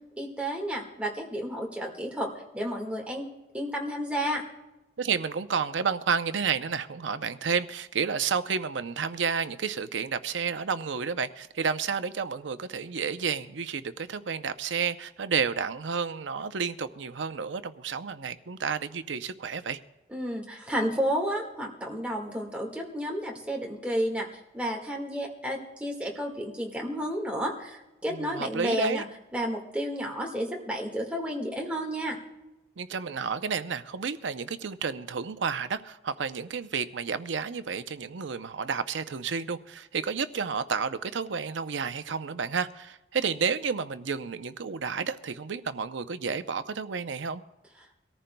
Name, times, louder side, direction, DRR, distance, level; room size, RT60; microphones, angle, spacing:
voice 1, 0.2-2.3 2.5-3.3 3.5-4.4 20.1-24.3 24.5-29.0 29.3-32.2, equal, 5° right, 1.7 m, -31 dB
voice 2, 5.0-19.8 28.1-29.0 32.8-47.4, right 6 dB, 90° right, 0.6 m, -31 dB
24.0 x 14.0 x 2.2 m
head